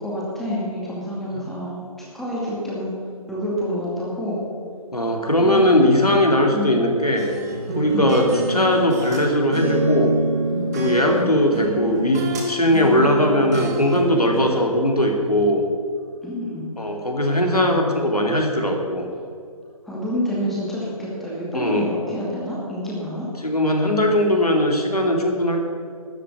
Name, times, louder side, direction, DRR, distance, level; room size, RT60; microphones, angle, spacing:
voice 1, 0.0-1.8 2.1-2.9 3.3-4.4 5.4-6.2 6.5-6.8 7.9-8.2 10.5-11.3 16.2-16.7 17.4-18.1 19.8-23.2, equal, ahead, -7 dB, 2.3 m, -28 dB
voice 2, 4.9-7.3 7.8-10.1 10.7-15.6 16.8-19.1 21.5-21.8 23.4-25.7, left 1 dB, 85° left, 1 dB, 2.8 m, -19 dB
sound 1, 7.2-9.2 9.5-12.5 12.7-14.6, right 2 dB, 25° right, 2.0 m, -27 dB
13.0 x 7.5 x 9.4 m, 2.3 s
figure-of-eight pair, 145°, 19 cm